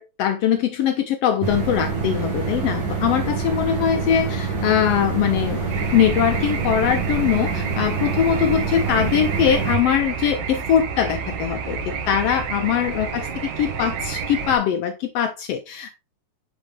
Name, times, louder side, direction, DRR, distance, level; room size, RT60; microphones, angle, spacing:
voice 1, 0.0-5.6 5.9-16.0, left 9 dB, 80° left, 1.4 m, -22 dB
sound 1, 1.4-9.8, right 5 dB, 45° right, 2.0 m, -26 dB
sound 2, 5.7-14.6, right 5 dB, 80° right, 2.4 m, -30 dB
5.9 x 5.1 x 3.2 m
omnidirectional pair, 3.4 m